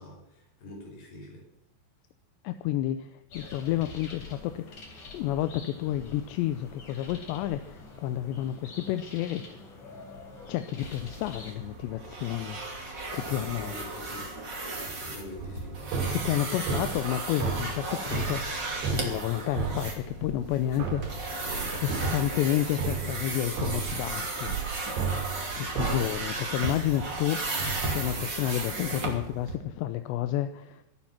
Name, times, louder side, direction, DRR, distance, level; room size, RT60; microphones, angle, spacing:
voice 1, 0.0-1.5 13.2-14.3 14.8-15.8, left 2 dB, 65° left, 0 dB, 7.0 m, -45 dB
voice 2, 2.4-4.8 5.1-9.6 10.5-12.6 13.1-13.7 16.1-18.6 18.9-21.3 21.8-24.6 25.1-25.2 25.6-27.6 27.9-30.8, left 13 dB, 85° left, 10 dB, 2.9 m, -30 dB
sound 1, 3.3-11.5, left 3 dB, 45° left, 4.6 m, -46 dB
sound 2, 10.8-29.5, right 2 dB, 30° right, 2.8 m, -35 dB
sound 3, 15.4-20.5 20.8-28.2, right 5 dB, 75° right, 4.2 m, -35 dB
23.5 x 8.8 x 5.9 m, 0.86 s
omnidirectional pair, 5.1 m